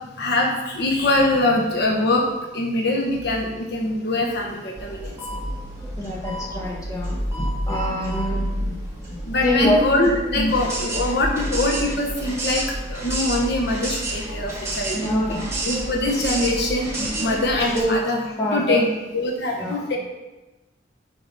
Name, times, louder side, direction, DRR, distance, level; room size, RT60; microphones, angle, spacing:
voice 1, 0.2-2.2 2.5-5.1 9.3-18.2 18.5-18.9 19.1-20.0, left 2 dB, 60° left, 0 dB, 1.0 m, -23 dB
sound 1, 4.8-17.8, right 1 dB, 15° right, 1.8 m, -29 dB
voice 2, 6.0-8.7 9.4-9.8 10.4-10.5 14.9-15.5 17.7-18.0 18.4-18.8 19.6-19.8, equal, 20° left, -2 dB, 1.3 m, -25 dB
6.8 x 4.8 x 5.4 m, 1.1 s
head